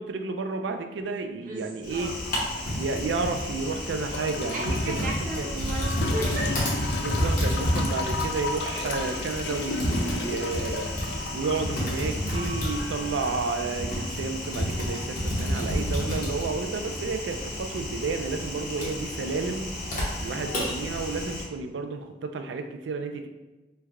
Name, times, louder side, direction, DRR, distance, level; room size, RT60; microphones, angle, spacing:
voice 1, 0.0-2.1 2.8-5.0 5.4-5.5 7.0-10.9 11.3-19.7 20.2-23.3, right 3 dB, 80° right, 6 dB, 0.4 m, -31 dB
voice 2, 1.2-2.2 4.5-6.7 20.3-20.7, right 1 dB, 50° right, -2 dB, 0.7 m, -35 dB
Typing, 1.8-21.4, equal, 50° left, 1.0 m, -30 dB
sound 1, 3.9-15.2, left 2 dB, 85° left, 1.3 m, -46 dB
sound 2, 4.1-5.0 6.0-13.0 14.4-14.5, left 3 dB, 65° left, 0.4 m, -35 dB
3.3 x 2.2 x 3.5 m, 1.2 s
head